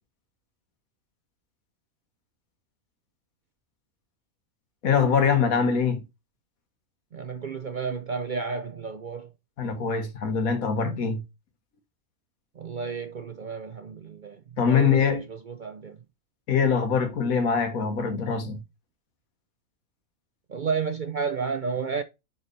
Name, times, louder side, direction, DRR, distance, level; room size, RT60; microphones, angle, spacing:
voice 1, 4.8-6.0 9.6-11.2 14.6-15.2 16.5-18.6, left 6 dB, 85° left, 1.6 m, -23 dB
voice 2, 7.1-9.3 12.6-14.4 14.7-16.0 20.5-22.0, right 5 dB, 55° right, 0.6 m, -32 dB
6.4 x 4.5 x 3.2 m
omnidirectional pair, 1.5 m